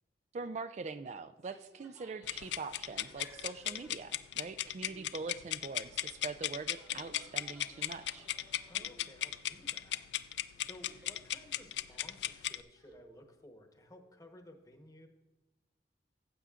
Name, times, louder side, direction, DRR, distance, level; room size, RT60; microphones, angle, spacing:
voice 1, 0.3-8.3, right 4 dB, 40° right, 11 dB, 0.3 m, -43 dB
sound 1, 1.3-2.3 2.9-4.6 4.9-14.4, right 1 dB, 80° right, 2.9 m, -65 dB
sound 2, 1.4-4.0 4.3-4.4 5.3-9.5 9.8-10.3 10.6-11.2 11.5-12.9, equal, 15° right, 1.1 m, -60 dB
sound 3, 2.2-12.6, left 12 dB, 70° left, 0.4 m, -37 dB
voice 2, 8.7-10.1 10.5-15.1, left 1 dB, 20° left, 4 dB, 1.0 m, -56 dB
15.0 x 8.0 x 2.4 m, 1.1 s
head